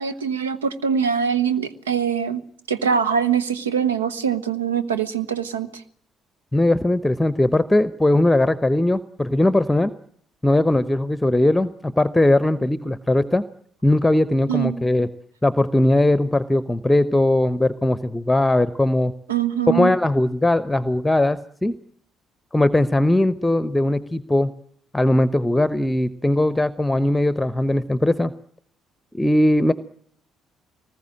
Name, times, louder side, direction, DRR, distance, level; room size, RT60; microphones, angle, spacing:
voice 1, 0.0-2.4 2.7-5.8 14.5-14.8 19.3-19.9, right 7 dB, 80° right, 14 dB, 1.1 m, -23 dB
voice 2, 6.5-9.9 10.4-13.4 13.8-15.1 15.4-19.1 19.7-21.7 22.5-24.5 24.9-28.3 29.1-29.7, left 1 dB, 10° left, 15 dB, 0.9 m, -19 dB
24.5 x 20.0 x 7.7 m, 0.64 s
figure-of-eight pair, 45°, 0 cm